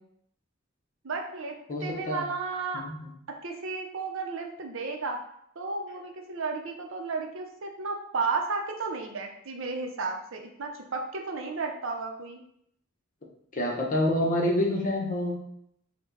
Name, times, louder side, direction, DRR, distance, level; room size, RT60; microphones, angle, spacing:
voice 1, 1.0-2.8 3.3-5.2 5.6-12.4, right 4 dB, 65° right, 3 dB, 0.7 m, -33 dB
voice 2, 1.7-2.3 2.7-3.1 13.5-15.4, left 1 dB, 40° left, -1 dB, 0.9 m, -27 dB
5.0 x 2.2 x 3.9 m, 0.72 s
head